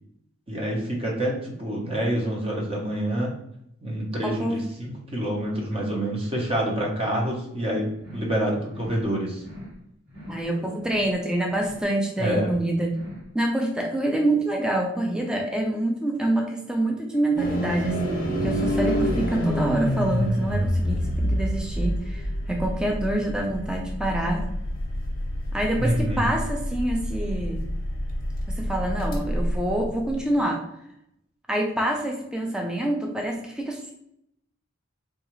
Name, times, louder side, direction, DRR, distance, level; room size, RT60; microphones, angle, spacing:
voice 1, 0.5-3.3 3.8-9.4 12.2-12.5 25.8-26.3, right 1 dB, 25° right, -2 dB, 0.8 m, -27 dB
voice 2, 4.2-4.6 10.3-12.9 13.3-24.5 25.5-27.7 28.6-30.6 31.5-33.9, right 1 dB, 5° right, 0 dB, 0.4 m, -26 dB
sound 1, 8.0-8.4 8.7-9.1 9.4-9.8 10.1-10.5 10.8-11.2 11.5-11.9 12.2-12.6 12.9-13.3, left 1 dB, 50° right, 1.3 m, -42 dB
sound 2, 17.4-30.4, equal, 40° left, 0.7 m, -27 dB
3.7 x 2.4 x 3.0 m, 0.77 s
head